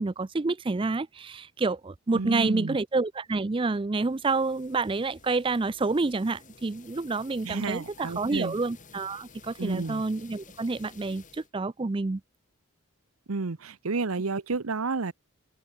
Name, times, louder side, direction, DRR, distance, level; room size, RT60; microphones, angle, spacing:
voice 1, 0.0-12.2, right 3 dB, 25° right, 0.4 m, -28 dB
voice 2, 2.1-2.8 7.4-8.5 9.6-10.0 13.3-15.1, right 3 dB, 85° right, 0.9 m, -31 dB
sound 1, 4.0-11.5, left 5 dB, 35° left, 4.0 m, -53 dB
head